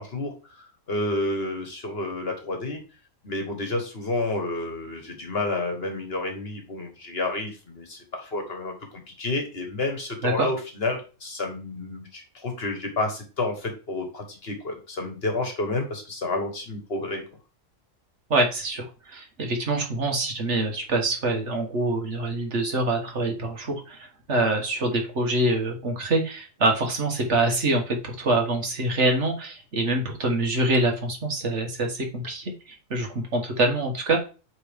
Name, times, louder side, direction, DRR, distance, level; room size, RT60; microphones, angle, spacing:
voice 1, 0.0-2.8 3.2-17.2, left 2 dB, 45° left, 4 dB, 1.4 m, -30 dB
voice 2, 18.3-32.5 32.9-34.2, right 2 dB, 55° right, 2 dB, 1.6 m, -25 dB
8.3 x 3.6 x 3.5 m, 0.34 s
omnidirectional pair, 1.4 m